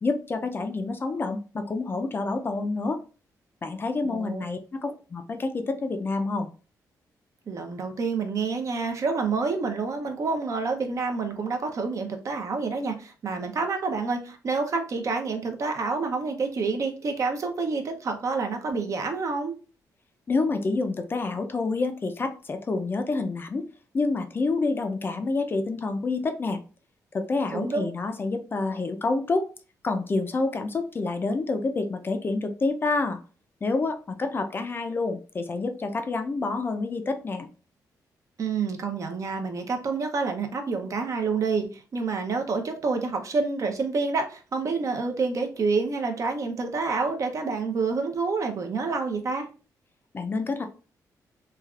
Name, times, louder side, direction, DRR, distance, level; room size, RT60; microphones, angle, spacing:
voice 1, 0.0-3.0 3.6-6.5 20.3-23.7 23.9-26.6 27.1-29.5 29.8-33.2 33.6-37.5 50.1-50.7, left 3 dB, 30° left, 7 dB, 0.4 m, -28 dB
voice 2, 4.0-4.4 4.8-4.9 7.5-19.6 27.5-27.9 38.4-49.5, right 4 dB, 50° right, 5 dB, 0.6 m, -28 dB
3.2 x 2.4 x 2.3 m, 0.35 s
cardioid pair, 115°, 7 cm